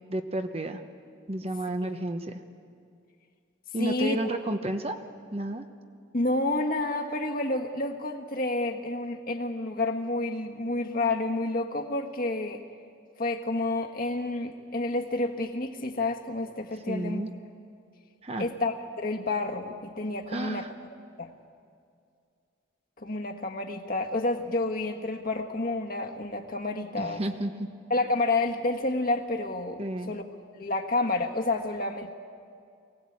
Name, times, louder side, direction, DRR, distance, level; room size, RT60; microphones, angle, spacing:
voice 1, 0.1-0.8 1.3-2.4 3.7-5.0 5.3-5.7 16.9-17.3 18.2-18.5 20.3-20.7 27.0-27.7 29.8-30.1, right 1 dB, 30° right, 7 dB, 0.9 m, -31 dB
voice 2, 3.8-4.2 6.1-12.6 13.2-17.3 18.4-20.7 21.2-21.3 23.0-27.2 27.9-30.2 30.5-32.1, left 2 dB, 45° left, 3 dB, 1.5 m, -29 dB
23.0 x 17.5 x 8.7 m, 2.3 s
head